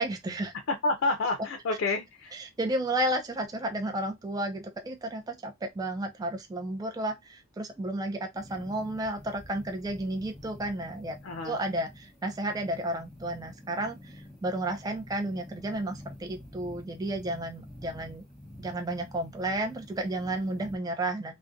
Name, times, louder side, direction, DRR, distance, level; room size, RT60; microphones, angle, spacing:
voice 1, 0.0-0.5 2.4-11.2 11.4-18.2 18.6-21.4, right 1 dB, 20° right, 0.3 m, -32 dB
voice 2, 0.7-2.4 11.2-11.6, left 3 dB, 85° left, 0.4 m, -29 dB
sound 1, 8.3-20.8, left 1 dB, ahead, 0.9 m, -48 dB
2.5 x 2.0 x 2.5 m
head